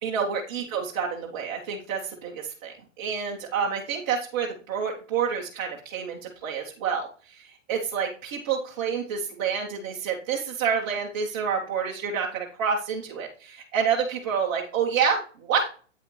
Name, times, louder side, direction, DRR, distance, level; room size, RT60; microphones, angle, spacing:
voice 1, 0.0-7.4 7.7-15.7, right 6 dB, 15° right, -3 dB, 0.7 m, -28 dB
8.5 x 5.6 x 3.1 m, 0.38 s
hypercardioid pair, 165°, 39 cm